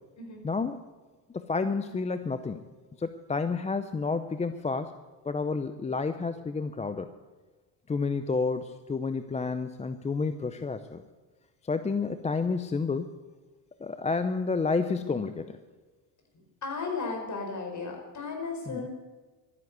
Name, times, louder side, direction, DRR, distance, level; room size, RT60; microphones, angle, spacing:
voice 1, 0.4-0.8 1.3-2.6 3.0-5.0 5.2-7.1 7.9-11.0 11.6-13.1 13.8-15.6 18.7-18.9, left 4 dB, 15° left, 11 dB, 0.6 m, -30 dB
voice 2, 16.3-18.9, left 4 dB, 40° left, 3 dB, 4.8 m, -35 dB
12.5 x 10.5 x 8.0 m, 1.3 s
supercardioid pair, 100°, 46 cm